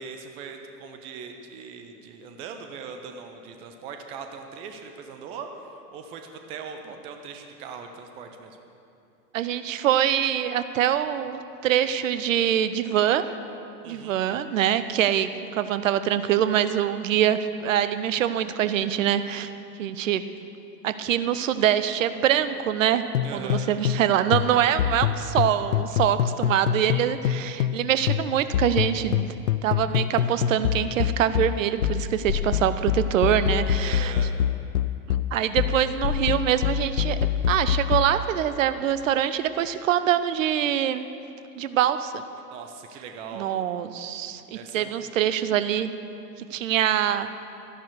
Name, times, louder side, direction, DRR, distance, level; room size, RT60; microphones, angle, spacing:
voice 1, 0.0-8.6 13.8-14.2 23.2-23.7 33.8-34.4 42.5-43.5 44.5-45.0, right 5 dB, 15° right, 5 dB, 0.4 m, -40 dB
voice 2, 9.3-13.2 13.9-19.5 19.8-20.3 20.8-23.0 23.3-29.3 29.6-34.1 35.3-37.2 37.5-41.1 41.6-42.2 43.3-45.9 46.5-47.3, right 10 dB, 55° right, 12 dB, 0.8 m, -24 dB
sound 1, 23.1-24.1 24.3-27.8 28.1-38.1, left 10 dB, 65° left, 0.6 m, -25 dB
13.0 x 11.0 x 6.5 m, 2.7 s
figure-of-eight pair, 95°, 48 cm